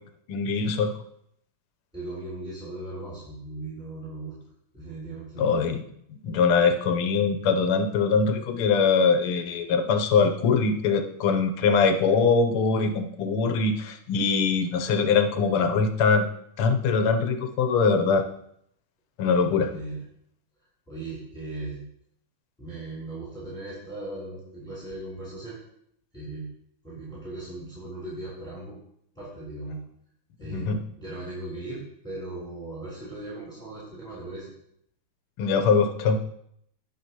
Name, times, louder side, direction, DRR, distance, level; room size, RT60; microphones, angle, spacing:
voice 1, 0.3-0.9 5.4-5.8 6.2-16.3 16.6-18.2 19.2-19.7 30.5-30.8 35.4-36.2, left 5 dB, 85° left, 7 dB, 1.8 m, -22 dB
voice 2, 1.9-4.3 4.7-5.6 19.7-20.0 20.9-21.8 22.6-25.6 26.1-26.5 26.8-28.7 29.2-29.8 30.4-30.7 31.0-34.5, right 2 dB, ahead, -8 dB, 3.4 m, -38 dB
18.0 x 6.1 x 3.0 m, 0.72 s
omnidirectional pair, 2.3 m